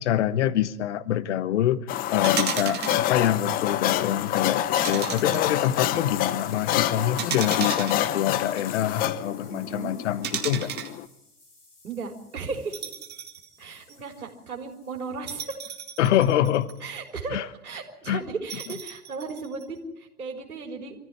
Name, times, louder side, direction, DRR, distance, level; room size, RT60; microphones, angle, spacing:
voice 1, 0.0-1.8 2.1-10.7 16.0-16.7 17.3-17.4 18.1-18.2, left 11 dB, 50° left, 15 dB, 1.4 m, -25 dB
sound 1, 1.9-11.0, left 12 dB, 20° left, 0.7 m, -27 dB
sound 2, 2.2-3.1 4.7-5.7 7.2-8.6 10.2-11.0 12.7-13.5 13.9-14.0 15.3-16.9 18.5-19.6, right 9 dB, 20° right, 2.0 m, -34 dB
voice 2, 2.6-3.0 5.1-5.6 9.4-10.0 11.8-12.8 13.6-15.6 16.8-21.0, right 4 dB, 70° right, 1 dB, 4.0 m, -36 dB
sound 3, 5.6-16.3, left 2 dB, 85° left, 4.6 m, -54 dB
25.5 x 14.5 x 9.8 m, 0.88 s
figure-of-eight pair, 105°, 45 cm